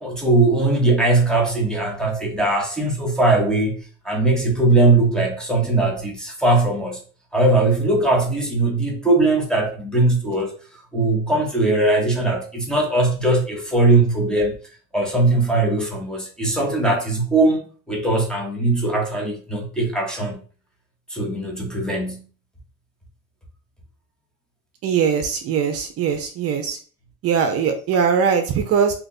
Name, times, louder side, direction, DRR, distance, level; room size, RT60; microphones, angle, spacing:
voice 1, 0.0-3.7 4.0-7.0 7.3-10.5 10.9-14.6 14.9-17.6 17.9-20.4 21.1-22.2, right 2 dB, ahead, 0.8 m, -20 dB
voice 2, 24.8-26.8 27.2-28.9, right 6 dB, 50° right, 0.6 m, -21 dB
2.8 x 2.4 x 4.0 m
cardioid pair, 145°, 30 cm